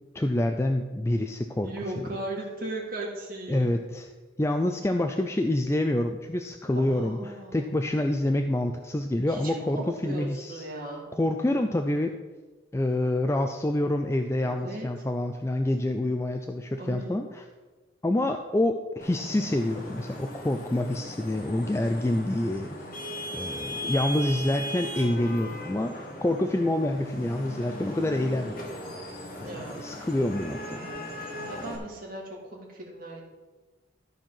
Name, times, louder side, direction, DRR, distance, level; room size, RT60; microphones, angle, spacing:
voice 1, 0.1-1.7 3.5-4.1 4.4-10.6 11.2-12.2 12.7-17.3 18.0-22.8 23.3-28.7 29.4-30.9, left 1 dB, 15° left, 5 dB, 0.4 m, -27 dB
voice 2, 1.6-3.8 6.7-7.7 9.3-11.1 14.4-14.9 16.8-17.3 29.4-29.9 31.1-33.2, right 1 dB, 50° right, -1 dB, 2.2 m, -38 dB
Vehicle horn car horn honking / Traffic noise roadway noise, 19.0-31.8, equal, 50° left, 1.9 m, -38 dB
13.5 x 4.5 x 5.7 m, 1.3 s
head